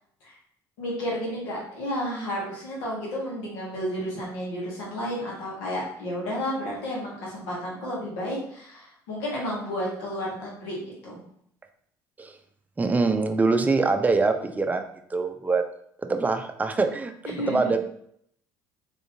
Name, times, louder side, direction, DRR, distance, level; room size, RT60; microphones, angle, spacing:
voice 1, 0.8-11.2 17.3-17.7, equal, 85° left, -4 dB, 1.6 m, -32 dB
voice 2, 12.8-14.8 15.1-15.6 16.0-17.8, right 3 dB, 15° right, 6 dB, 0.5 m, -24 dB
3.8 x 3.5 x 2.7 m, 0.68 s
supercardioid pair, 75°, 9 cm